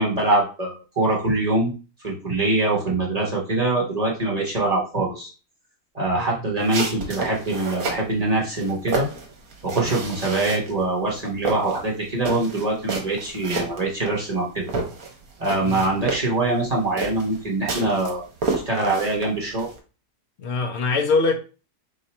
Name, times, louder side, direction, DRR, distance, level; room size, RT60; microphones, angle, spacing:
voice 1, 0.0-1.7 2.0-5.3 5.9-9.1 9.6-14.7 15.4-18.2 18.5-19.7, right 2 dB, 25° right, 1.0 m, -23 dB
sound 1, 6.6-8.1 8.5-10.8 11.1-14.4 14.7-19.8, right 3 dB, 60° right, 1.3 m, -30 dB
voice 2, 20.4-21.4, left 3 dB, 50° left, 0.9 m, -23 dB
3.7 x 2.7 x 4.3 m
omnidirectional pair, 1.8 m